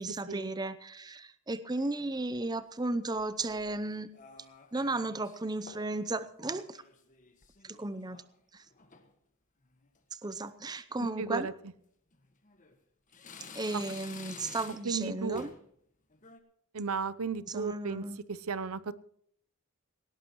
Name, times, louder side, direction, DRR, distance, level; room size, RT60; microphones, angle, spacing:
voice 1, 0.0-4.1 4.7-6.8 7.6-8.2 8.5-8.6 10.1-11.5 13.5-15.5 17.5-18.2, right 2 dB, 20° right, 14 dB, 0.7 m, -34 dB
sound 1, 1.8-2.5 3.2-3.7 4.1-5.4 5.7-6.0 6.3-8.3 8.6-9.1 9.6-10.0 10.3-10.4 11.3-11.5 12.1-12.8 13.1-15.0 15.3-15.7 16.1-16.4, left 5 dB, 35° left, 1.6 m, -51 dB
voice 2, 11.2-11.5 13.7-13.8 14.8-15.4 16.7-18.0 18.3-18.9, right 5 dB, 80° right, 17 dB, 0.7 m, -34 dB
18.5 x 18.0 x 3.1 m, 0.66 s
head